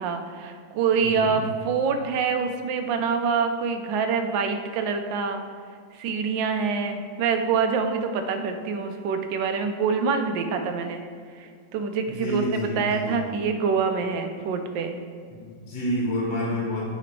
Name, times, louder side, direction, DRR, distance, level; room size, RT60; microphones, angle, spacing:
voice 1, 0.0-5.4 5.9-11.0 11.3-15.0, right 5 dB, 75° right, 6 dB, 1.3 m, -26 dB
voice 2, 1.0-1.3 12.1-13.2 15.3-16.8, equal, 50° left, -5 dB, 1.7 m, -29 dB
8.7 x 4.1 x 4.6 m, 2.1 s
omnidirectional pair, 2.2 m